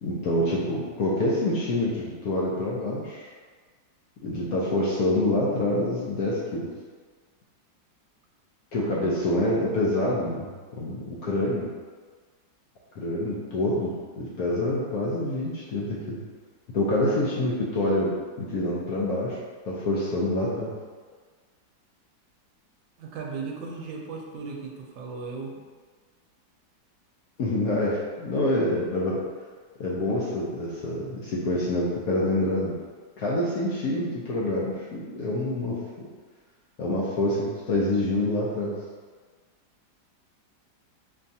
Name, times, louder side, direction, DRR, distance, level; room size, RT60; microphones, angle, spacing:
voice 1, 0.0-3.3 4.2-6.7 8.7-10.5 10.8-11.7 13.0-16.2 16.7-19.4 19.7-20.7 27.4-29.2 29.8-32.7 33.2-36.1 36.8-38.8, left 1 dB, 65° left, -6 dB, 0.9 m, -26 dB
voice 2, 23.0-25.6, right 4 dB, 85° right, 0 dB, 1.3 m, -36 dB
5.5 x 2.3 x 2.7 m, 1.5 s
omnidirectional pair, 2.0 m